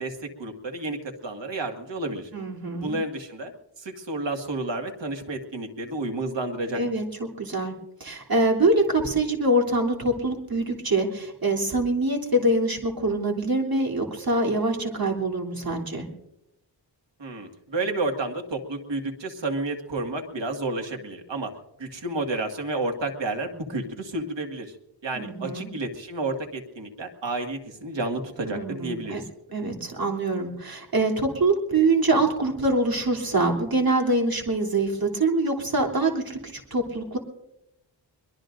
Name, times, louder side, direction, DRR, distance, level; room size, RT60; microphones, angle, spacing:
voice 1, 0.0-2.3 2.8-3.5 3.8-6.8 17.2-21.5 21.8-24.7 25.0-29.2, right 2 dB, 75° right, 3 dB, 2.0 m, -31 dB
voice 2, 2.3-3.0 6.7-7.7 8.0-16.1 25.1-25.7 28.4-29.2 29.5-37.2, right 2 dB, 50° right, 0 dB, 3.2 m, -24 dB
23.5 x 22.0 x 2.6 m, 0.90 s
wide cardioid pair, 95°, 44 cm